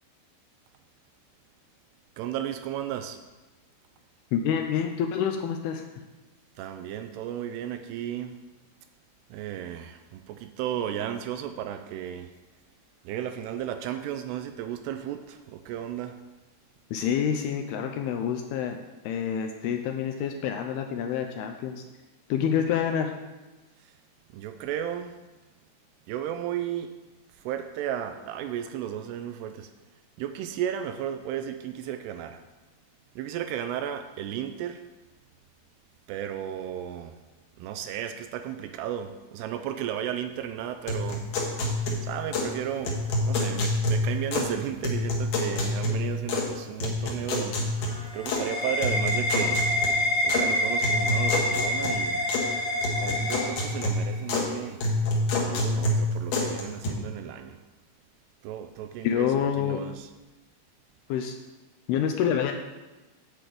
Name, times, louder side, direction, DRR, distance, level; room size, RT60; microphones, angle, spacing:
voice 1, 2.2-3.2 6.6-8.4 9.3-12.3 13.0-16.2 23.8-24.0 24.3-25.2 26.1-27.0 27.3-29.7 30.2-32.4 33.2-34.8 36.1-37.2 37.6-41.3 41.6-41.7 42.0-49.7 50.2-52.3 52.9-54.8 55.4-57.6 58.4-60.1, right 10 dB, 80° right, 8 dB, 2.5 m, -34 dB
voice 2, 4.3-5.8 16.9-18.8 19.0-21.8 22.3-23.1 59.0-59.8 61.1-61.4 61.9-62.5, left 8 dB, 80° left, 4 dB, 2.4 m, -27 dB
sound 1, 40.9-42.6 42.8-44.6 44.8-46.5 46.8-48.4 48.8-50.5 50.8-52.5 52.8-54.5 54.8-56.9, left 2 dB, 60° left, 2.6 m, -28 dB
sound 2, 47.8-54.1, left 1 dB, 30° left, 1.4 m, -27 dB
8.6 x 5.1 x 7.7 m, 1.2 s
omnidirectional pair, 5.0 m